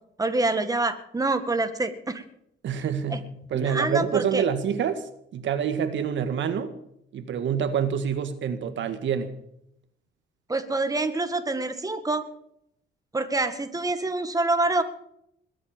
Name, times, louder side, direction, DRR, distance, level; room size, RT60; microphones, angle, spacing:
voice 1, 0.2-2.2 3.1-3.2 3.5-4.4 10.5-12.2 13.1-14.8, right 2 dB, 15° right, 8 dB, 1.8 m, -26 dB
voice 2, 2.6-3.2 3.5-6.7 7.1-9.3, right 7 dB, 70° right, 9 dB, 1.7 m, -27 dB
21.5 x 8.1 x 7.6 m, 0.75 s
cardioid pair, 90°, 20 cm